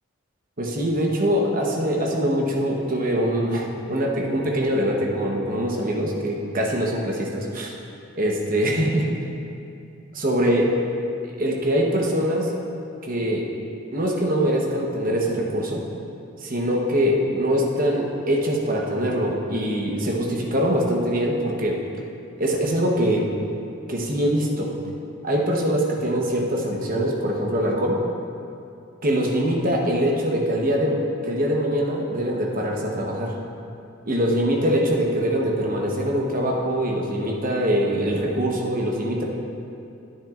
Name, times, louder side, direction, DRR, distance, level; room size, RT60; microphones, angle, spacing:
voice 1, 0.6-7.7 8.2-9.1 10.1-10.7 11.4-12.5 13.0-13.5 13.9-15.8 16.4-21.8 22.4-23.3 23.9-24.7 25.2-28.0 29.0-33.4 34.1-39.3, equal, 40° right, -1 dB, 1.0 m, -23 dB
10.5 x 8.8 x 2.5 m, 2.6 s
head